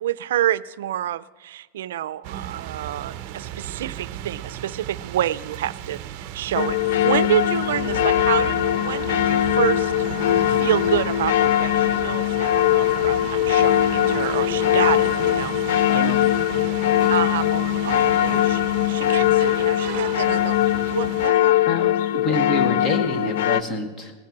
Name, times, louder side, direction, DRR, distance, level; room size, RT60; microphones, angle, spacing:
voice 1, 0.0-6.0 6.3-6.8 7.0-9.9 10.5-16.1 17.1-20.6 20.9-21.5, right 12 dB, 90° right, 18 dB, 0.4 m, -28 dB
sound 1, 2.2-21.3, right 11 dB, 40° right, 0.7 m, -35 dB
sound 2, 6.5-23.6, left 12 dB, 70° left, 0.3 m, -21 dB
sound 3, 12.8-13.0 14.1-14.2 15.7-15.9 17.0-17.2 18.2-18.4, left 2 dB, 45° left, 3.8 m, -38 dB
voice 2, 15.9-16.3 21.7-24.1, left 2 dB, 20° left, 7 dB, 1.3 m, -27 dB
19.0 x 7.7 x 5.9 m, 1.3 s
supercardioid pair, 175°, 0 cm